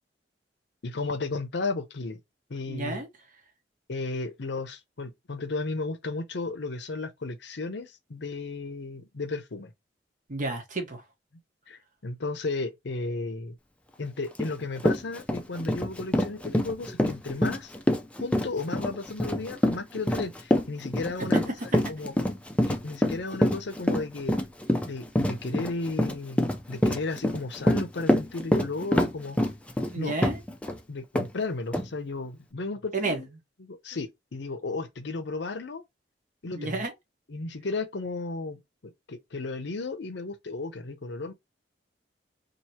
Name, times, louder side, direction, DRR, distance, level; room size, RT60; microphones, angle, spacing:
voice 1, 0.8-2.2 2.5-3.0 3.9-9.7 11.7-13.5 14.0-17.7 18.2-21.4 21.9-22.1 22.7-24.3 24.9-29.4 30.0-30.1 30.9-33.3 33.6-35.8 36.4-36.8 37.3-38.6 39.1-41.3, left 3 dB, 70° left, 0.7 m, -34 dB
voice 2, 2.7-3.1 10.3-11.0 21.2-21.8 29.9-30.4 32.9-33.2 36.5-36.9, right 2 dB, 45° right, 1.0 m, -31 dB
Run, 14.4-14.5 14.8-30.8 31.1-31.3 31.7-31.9, left 1 dB, 5° left, 0.5 m, -25 dB
2.9 x 2.7 x 4.3 m
head